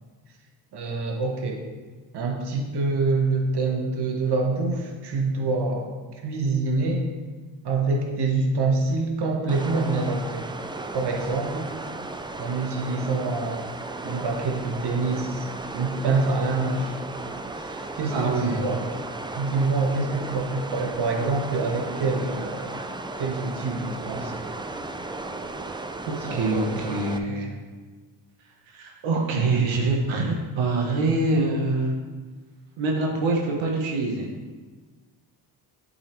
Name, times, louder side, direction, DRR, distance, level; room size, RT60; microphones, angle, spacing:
voice 1, 0.7-1.6 2.1-5.9 6.2-7.0 7.6-10.5 10.9-11.6 12.4-13.7 14.0-15.5 15.7-17.0 17.5-19.1 19.4-22.7 23.2-24.5 26.3-27.3, right 3 dB, 60° right, 2 dB, 1.3 m, -26 dB
sound 1, 9.5-27.2, right 2 dB, 10° right, 0.3 m, -35 dB
voice 2, 18.1-18.7 26.1-26.6 26.9-27.5 28.7-31.9 32.8-34.2, right 3 dB, 85° right, 0 dB, 1.1 m, -25 dB
8.6 x 5.4 x 3.1 m, 1.4 s
cardioid pair, 80°, 45 cm